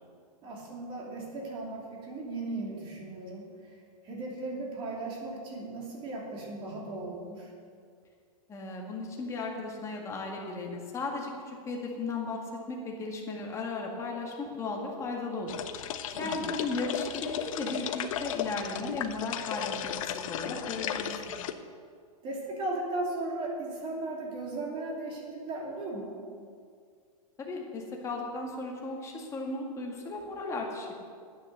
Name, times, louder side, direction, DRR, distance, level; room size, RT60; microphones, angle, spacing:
voice 1, 0.4-3.8 4.0-7.5 16.1-16.5 22.2-26.2, right 2 dB, 25° right, -2 dB, 2.9 m, -37 dB
voice 2, 8.5-12.4 12.7-15.6 16.2-21.2 27.4-30.9, left 3 dB, 15° left, -1 dB, 1.9 m, -36 dB
sound 1, 15.5-21.5, left 9 dB, 60° left, 0.8 m, -35 dB
10.0 x 9.5 x 6.8 m, 2.1 s
hypercardioid pair, 150°, 20 cm